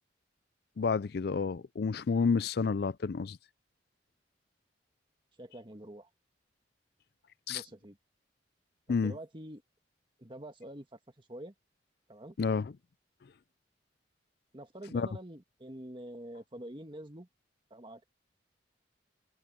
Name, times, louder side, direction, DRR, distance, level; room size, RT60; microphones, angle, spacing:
voice 1, 0.8-3.4 7.5-7.6 8.9-9.1 12.4-12.7 14.9-15.1, left 5 dB, 60° left, 0.4 m, -30 dB
voice 2, 5.4-6.1 7.5-8.0 8.9-9.6 10.2-11.5 12.1-12.4 14.5-17.3 17.7-18.1, right 1 dB, 25° right, 1.9 m, -46 dB
head